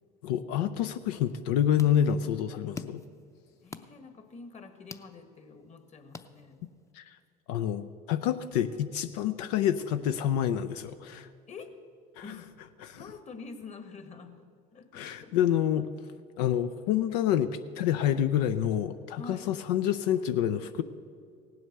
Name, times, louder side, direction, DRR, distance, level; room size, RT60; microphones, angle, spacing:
voice 1, 0.2-3.0 6.9-7.0 7.5-11.3 12.2-12.3 12.8-13.0 14.9-15.9 16.4-17.5 17.8-20.8, left 10 dB, 85° left, 10 dB, 0.5 m, -27 dB
sound 1, 1.3-6.9, left 4 dB, 15° left, 0.6 m, -49 dB
voice 2, 3.6-6.6 11.5-11.8 12.2-12.5 13.0-15.6 19.1-19.5, left 4 dB, 35° left, 8 dB, 1.5 m, -46 dB
17.5 x 7.9 x 6.6 m, 2.3 s
supercardioid pair, 90°, 20 cm